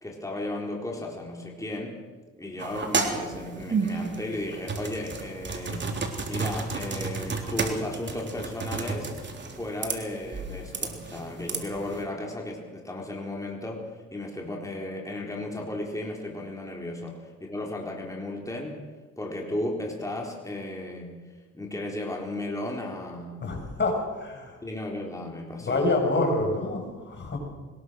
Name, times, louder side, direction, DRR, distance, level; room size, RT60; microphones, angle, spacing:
voice 1, 0.0-2.0 2.4-5.9 6.3-9.1 9.5-18.8 19.2-21.2 21.5-23.5 24.6-26.0, left 1 dB, 10° left, 0 dB, 4.2 m, -35 dB
sound 1, 2.6-12.0, right 4 dB, 40° right, 3.5 m, -32 dB
voice 2, 23.4-24.6 25.6-27.4, left 2 dB, 35° left, 2 dB, 7.0 m, -27 dB
22.0 x 20.5 x 6.5 m, 1.3 s
cardioid pair, 90°, 30 cm